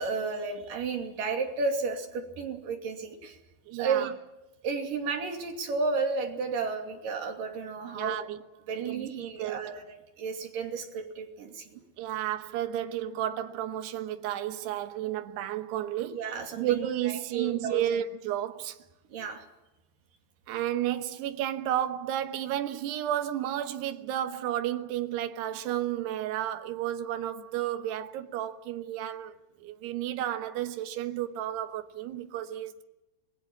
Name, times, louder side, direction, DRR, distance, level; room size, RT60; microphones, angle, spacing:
voice 1, 0.0-3.4 3.8-4.1 4.6-8.3 8.7-11.8 16.1-18.0 19.1-19.5, right 4 dB, 55° right, 4.2 m, -32 dB
voice 2, 3.7-4.1 8.0-8.4 8.7-9.7 12.0-16.3 16.5-18.8 20.5-29.3 29.6-32.8, right 11 dB, 80° right, 3.3 m, -32 dB
26.5 x 21.0 x 7.3 m
omnidirectional pair, 4.7 m